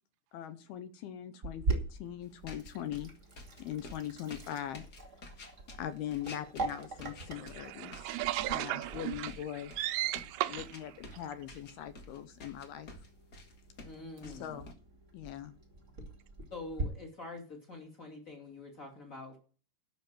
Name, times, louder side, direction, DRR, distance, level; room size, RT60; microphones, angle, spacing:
voice 1, 0.3-3.1 3.6-4.8 5.8-8.1 8.5-9.7 10.5-12.9 14.2-14.8 15.1-15.5, left 11 dB, 75° left, 2.5 m, -41 dB
Sink (filling or washing), 1.4-16.8, right 3 dB, 30° right, 1.4 m, -43 dB
sound 1, 2.2-14.7, left 2 dB, 55° left, 1.0 m, -50 dB
voice 2, 7.4-10.7, right 16 dB, 85° right, 3.0 m, -35 dB
voice 3, 13.8-14.6 16.5-19.4, left 2 dB, 25° left, 2.0 m, -46 dB
12.0 x 6.2 x 7.5 m
omnidirectional pair, 5.0 m